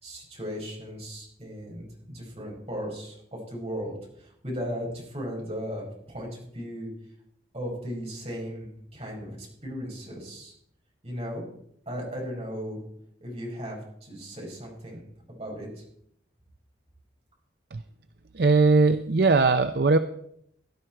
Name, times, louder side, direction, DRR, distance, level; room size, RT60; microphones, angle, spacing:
voice 1, 0.0-6.9 7.5-10.5 11.0-11.4 11.9-12.8 13.2-15.0 15.4-15.8, equal, 35° right, -2 dB, 5.5 m, -36 dB
voice 2, 18.3-20.0, right 3 dB, 55° right, 10 dB, 0.5 m, -20 dB
17.0 x 11.5 x 4.5 m, 0.71 s
head